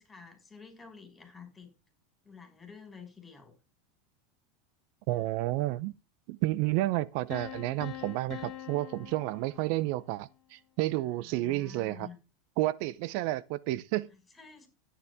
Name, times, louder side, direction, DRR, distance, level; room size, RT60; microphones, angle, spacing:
voice 1, 0.0-1.7 2.2-3.6 5.2-5.3 11.0-12.2 14.1-14.7, left 6 dB, 20° left, 5.4 m, -50 dB
voice 2, 5.1-5.9 6.3-12.1 12.6-14.1, right 17 dB, 60° right, 0.6 m, -31 dB
sound 1, 7.3-10.2, left 12 dB, 45° left, 1.4 m, -44 dB
13.0 x 10.0 x 3.6 m
hypercardioid pair, 90°, 0 cm